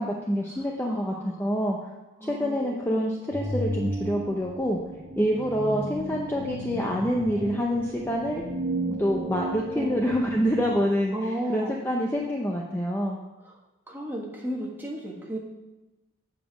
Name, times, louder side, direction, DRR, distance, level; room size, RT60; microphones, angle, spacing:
voice 1, 0.0-1.9 2.2-4.8 5.2-8.4 9.0-13.2, equal, 10° left, -1 dB, 0.6 m, -27 dB
voice 2, 0.8-1.4 2.2-3.2 9.7-10.0 11.1-11.7 13.9-15.4, right 1 dB, 10° right, -3 dB, 1.5 m, -34 dB
sound 1, 3.3-10.8, right 1 dB, 40° right, 1.5 m, -34 dB
8.2 x 5.1 x 6.1 m, 1.1 s
head